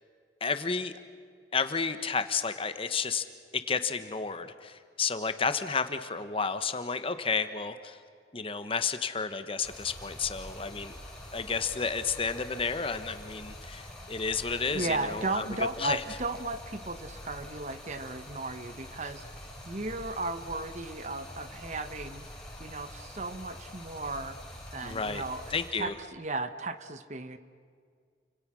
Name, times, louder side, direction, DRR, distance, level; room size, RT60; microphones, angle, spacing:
voice 1, 0.4-0.9 1.5-3.2 3.5-8.0 8.3-11.0 11.3-16.0 24.8-25.2 25.5-26.0, left 5 dB, 30° left, 10 dB, 1.2 m, -31 dB
Stream, 9.6-25.7, left 1 dB, 5° left, 5.2 m, -46 dB
voice 2, 14.7-19.2 19.7-22.3 22.6-24.4 24.7-25.4 25.8-27.4, right 2 dB, 40° right, 10 dB, 1.2 m, -35 dB
29.5 x 26.0 x 6.3 m, 2.1 s
head